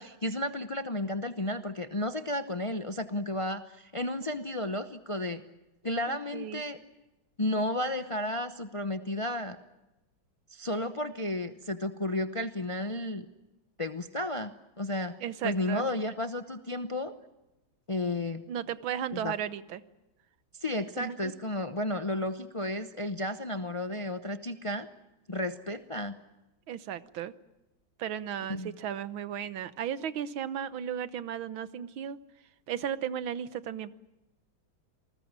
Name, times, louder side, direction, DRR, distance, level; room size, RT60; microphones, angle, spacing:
voice 1, 0.0-5.4 5.8-6.8 7.4-9.6 10.5-13.2 13.8-15.2 15.4-17.1 17.9-18.4 19.1-19.3 20.6-24.9 25.3-26.2 28.5-28.7, left 1 dB, 60° left, 9 dB, 0.3 m, -33 dB
voice 2, 6.1-6.6 15.2-15.9 18.5-19.8 21.0-21.2 26.7-27.3 28.0-32.2 32.7-33.9, right 9 dB, 80° right, 14 dB, 1.8 m, -35 dB
28.0 x 20.5 x 7.5 m, 0.99 s
omnidirectional pair, 2.2 m